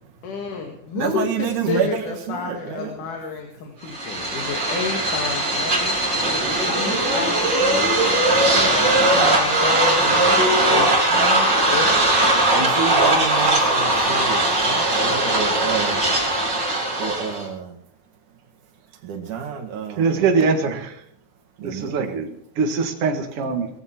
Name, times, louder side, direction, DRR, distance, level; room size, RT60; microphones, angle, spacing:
voice 1, 0.2-1.3 1.7-6.1 6.7-8.0 8.4-12.4, left 5 dB, 90° left, 3.5 m, -31 dB
voice 2, 0.9-2.9 6.2-6.8 8.2-9.2 10.5-10.6 12.5-16.1 17.0-17.8 19.0-20.2 20.6-20.8 21.6-22.2, right 7 dB, 80° right, 3.3 m, -29 dB
sound 1, 3.9-17.5, right 1 dB, 35° right, 4.6 m, -19 dB
voice 3, 20.0-20.9 21.6-23.7, right 4 dB, 50° right, 2.6 m, -22 dB
20.5 x 15.0 x 4.5 m
omnidirectional pair, 3.5 m